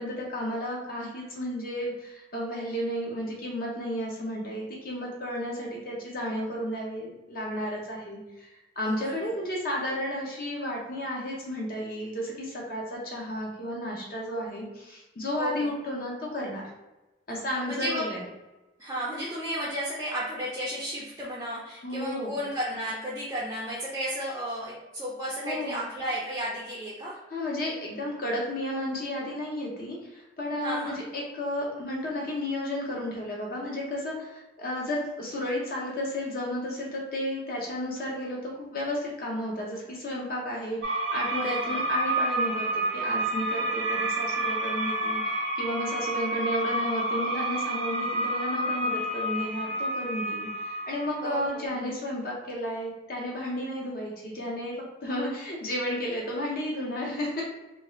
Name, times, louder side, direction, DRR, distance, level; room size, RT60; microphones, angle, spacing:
voice 1, 0.0-16.6 17.3-18.2 21.8-22.4 25.4-25.8 27.3-54.8 55.0-57.4, left 1 dB, 50° left, -2 dB, 0.6 m, -33 dB
voice 2, 8.8-9.3 15.4-15.7 17.3-17.4 17.7-18.0 18.8-27.2 30.6-31.0 41.4-41.8 51.2-51.9, equal, 15° right, -6 dB, 0.4 m, -33 dB
sound 1, 40.8-51.5, right 1 dB, 70° right, 0.5 m, -29 dB
2.7 x 2.3 x 2.9 m, 1.1 s
head